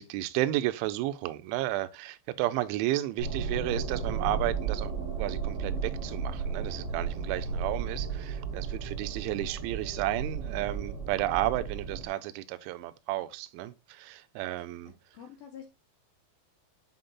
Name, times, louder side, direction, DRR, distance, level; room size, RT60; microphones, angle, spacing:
voice 1, 0.0-4.9 5.2-14.9, right 15 dB, 85° right, 2.9 m, -32 dB
sound 1, 3.2-12.1, right 5 dB, 70° right, 4.8 m, -34 dB
voice 2, 7.4-7.8 15.1-15.7, left 8 dB, 75° left, 2.2 m, -48 dB
11.5 x 3.9 x 2.3 m
omnidirectional pair, 5.4 m